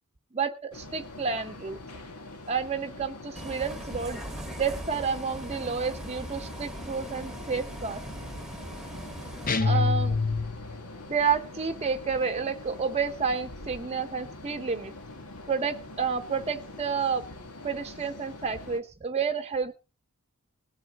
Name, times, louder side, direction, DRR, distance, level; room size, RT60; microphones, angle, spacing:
voice 1, 0.3-1.8 2.5-4.2 4.6-8.0 9.6-10.2 11.1-14.9 15.5-17.2 17.6-19.7, right 5 dB, 30° right, 7 dB, 0.8 m, -30 dB
sound 1, 0.7-18.8, left 2 dB, 90° left, 2.1 m, -44 dB
Bus, 3.4-9.5, right 1 dB, ahead, 1.3 m, -40 dB
sound 2, 9.5-10.8, left 4 dB, 40° left, 0.7 m, -25 dB
20.0 x 8.1 x 4.0 m, 0.31 s
head